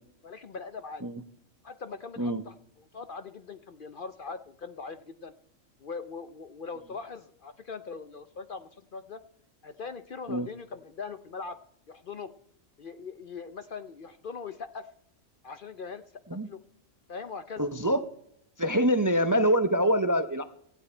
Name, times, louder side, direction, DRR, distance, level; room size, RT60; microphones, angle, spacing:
voice 1, 0.2-1.0 1.6-5.3 5.8-9.2 9.6-11.6 11.9-12.3 12.8-14.9 15.4-16.2 16.5-16.6 17.1-17.6, left 5 dB, 50° left, 11 dB, 0.7 m, -41 dB
voice 2, 17.6-18.0 18.6-20.4, equal, 20° right, 10 dB, 0.5 m, -25 dB
17.5 x 13.0 x 4.4 m, 0.74 s
omnidirectional pair, 1.4 m